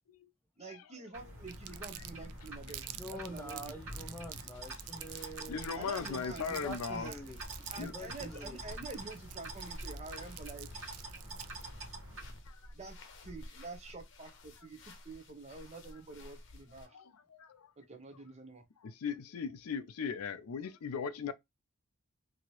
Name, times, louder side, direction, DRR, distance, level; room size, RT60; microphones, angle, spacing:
voice 1, 0.6-3.7 5.7-6.5 6.9-7.2 7.7-10.7 12.7-13.0 13.2-17.0 17.8-18.6, right 3 dB, 30° right, 0.6 m, -47 dB
sound 1, 1.1-12.3, right 1 dB, 65° right, 1.2 m, -46 dB
sound 2, 1.5-16.9, left 1 dB, 55° left, 0.7 m, -54 dB
Crumpling crinkling, 1.5-11.7, right 14 dB, 90° right, 0.3 m, -48 dB
voice 2, 3.0-5.8 6.5-7.4 7.8-8.6, equal, 10° left, 0.7 m, -45 dB
voice 3, 5.5-7.1 7.8-7.9 12.5-12.6 16.9-17.7 18.8-21.3, left 6 dB, 90° left, 0.4 m, -38 dB
2.9 x 2.7 x 3.0 m
head